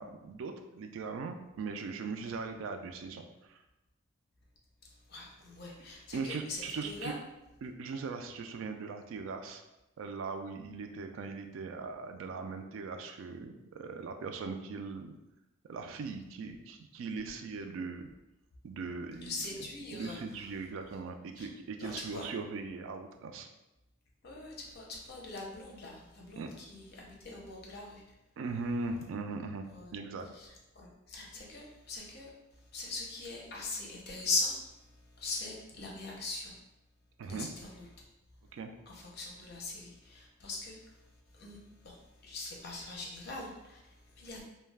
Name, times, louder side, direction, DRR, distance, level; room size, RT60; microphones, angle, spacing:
voice 1, 0.0-3.6 6.1-7.1 7.6-9.6 10.0-15.1 15.6-18.1 18.6-19.5 19.9-23.5 26.4-26.5 28.4-30.3 37.2-37.5 38.5-38.7, right 4 dB, 80° right, 5 dB, 0.3 m, -39 dB
voice 2, 5.1-7.1 19.2-20.2 21.4-21.5 21.8-22.3 24.2-28.0 29.7-29.9 30.3-30.5 30.8-32.3 32.7-34.6 35.2-36.6 37.3-37.9 38.9-40.8 41.3-41.6 41.8-42.0 42.2-44.4, left 3 dB, 50° left, -2 dB, 0.6 m, -40 dB
2.3 x 2.1 x 3.3 m, 0.96 s
head